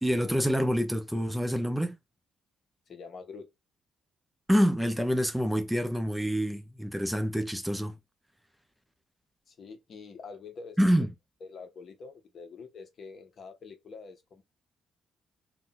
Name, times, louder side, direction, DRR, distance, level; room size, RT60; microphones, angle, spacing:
voice 1, 0.0-2.0 4.5-8.0 10.8-11.1, equal, 5° right, 0.4 m, -27 dB
voice 2, 2.9-3.5 9.5-10.9 11.4-14.4, left 4 dB, 55° left, 0.7 m, -46 dB
2.5 x 2.2 x 3.6 m
cardioid pair, 90°, 0 cm